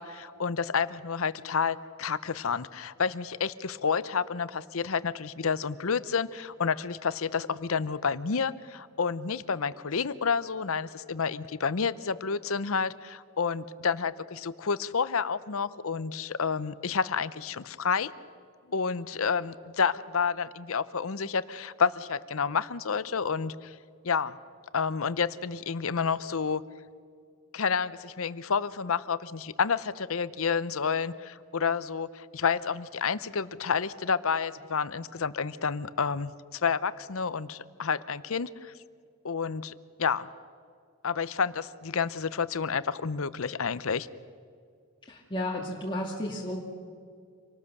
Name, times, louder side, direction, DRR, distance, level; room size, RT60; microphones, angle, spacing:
voice 1, 0.0-18.1 18.7-23.8 24.0-24.3 24.7-26.6 27.5-38.7 39.2-39.7 40.0-40.3 41.0-44.1, left 5 dB, 65° left, 16 dB, 0.7 m, -29 dB
voice 2, 45.1-46.6, left 1 dB, 20° left, -3 dB, 2.0 m, -33 dB
27.0 x 19.0 x 6.6 m, 2.2 s
head